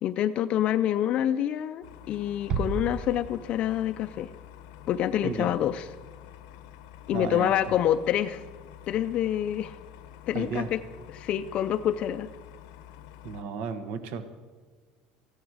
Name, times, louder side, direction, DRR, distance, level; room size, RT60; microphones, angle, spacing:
voice 1, 0.0-4.3 4.9-5.9 7.1-8.4 8.9-9.8 10.3-10.8 11.1-12.3, left 11 dB, 45° left, 10 dB, 0.4 m, -27 dB
sound 1, 1.8-13.4, left 10 dB, 85° left, 0.8 m, -48 dB
Bass drum, 2.5-3.9, right 5 dB, 40° right, 0.9 m, -33 dB
voice 2, 5.2-5.6 7.1-7.5 10.3-10.7 13.2-14.2, right 6 dB, 60° right, 11 dB, 1.2 m, -33 dB
15.5 x 12.0 x 4.8 m, 1.5 s
cardioid pair, 145°, 3 cm